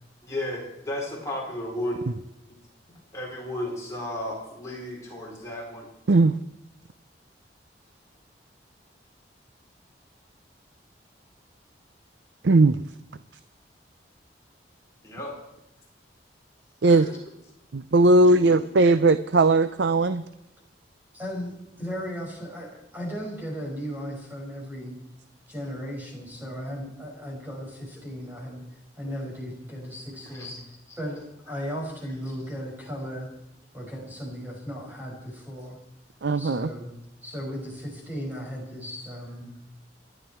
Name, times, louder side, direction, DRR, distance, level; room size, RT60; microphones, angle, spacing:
voice 1, 0.2-2.0 3.1-5.9 15.0-15.3 16.8-17.2 18.3-18.6 30.2-30.6 30.9-31.0, left 1 dB, 15° left, -3 dB, 4.2 m, -34 dB
voice 2, 12.4-12.8 16.8-17.1 17.7-20.2 36.2-36.7, right 2 dB, 75° right, 13 dB, 0.6 m, -18 dB
voice 3, 21.1-25.0 25.5-28.6 29.0-30.5 31.0-33.3 33.7-35.8 36.3-36.9 37.2-39.5, equal, 10° right, -2 dB, 5.7 m, -36 dB
28.5 x 11.0 x 4.5 m, 0.83 s
head